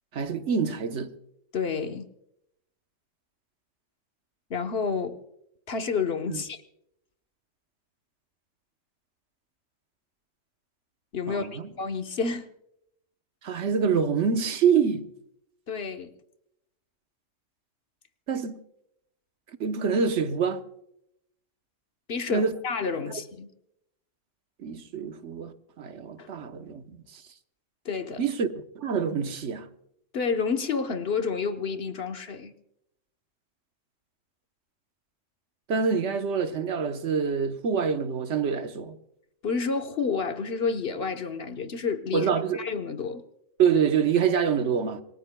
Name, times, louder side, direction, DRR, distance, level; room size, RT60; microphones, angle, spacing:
voice 1, 0.1-1.1 6.3-6.4 11.3-11.7 13.4-15.1 18.3-18.6 19.6-20.6 22.3-22.5 24.6-27.2 28.2-28.5 28.7-29.7 35.7-39.0 42.1-42.6 43.6-45.0, right 6 dB, 65° right, 1.2 m, -26 dB
voice 2, 1.5-2.1 4.5-5.2 5.7-6.6 11.1-12.5 15.7-16.1 22.1-23.5 26.2-26.3 27.8-28.3 30.1-32.5 39.4-42.3 42.5-43.2, left 5 dB, 55° left, 1.2 m, -29 dB
27.0 x 21.0 x 2.2 m
omnidirectional pair, 1.3 m